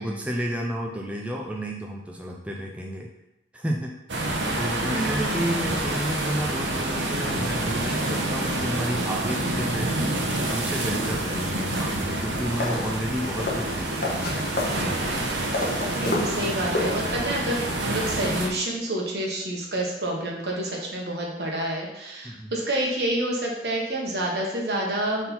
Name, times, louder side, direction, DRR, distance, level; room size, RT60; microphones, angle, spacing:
voice 1, 0.0-3.1 3.5-3.9 4.6-14.5 22.2-22.5, equal, 5° right, -1 dB, 0.4 m, -31 dB
sound 1, 4.1-18.5, right 1 dB, 85° right, 0.9 m, -28 dB
voice 2, 4.9-5.4 15.9-25.3, right 1 dB, 65° right, -2 dB, 1.4 m, -28 dB
sound 2, 12.4-17.4, left 2 dB, 60° left, 1.2 m, -31 dB
4.4 x 4.0 x 5.5 m, 0.89 s
head